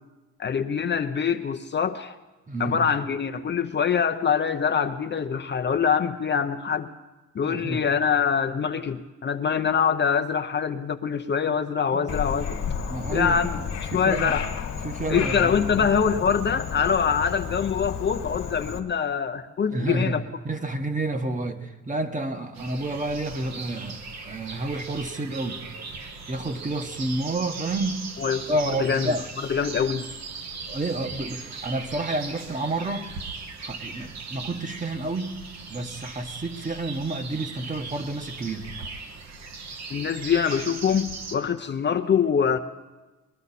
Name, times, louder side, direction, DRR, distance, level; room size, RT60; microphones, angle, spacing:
voice 1, 0.4-2.2 2.6-6.9 7.3-12.6 13.1-13.6 13.9-14.5 15.1-20.2 28.2-29.1 29.5-30.1 39.9-42.6, left 7 dB, 35° left, 7 dB, 0.6 m, -24 dB
voice 2, 2.5-2.8 7.4-7.9 11.9-12.1 12.9-14.4 14.8-15.9 19.7-25.6 26.3-28.1 28.5-29.2 30.7-33.1 33.6-35.4 35.7-38.7, right 2 dB, 25° right, 6 dB, 1.2 m, -30 dB
Frog, 12.1-18.8, left 7 dB, 60° left, 1.5 m, -32 dB
sound 1, 22.5-41.4, right 4 dB, 65° right, 1.3 m, -38 dB
20.5 x 11.5 x 4.1 m, 1.1 s
cardioid pair, 90°, 30 cm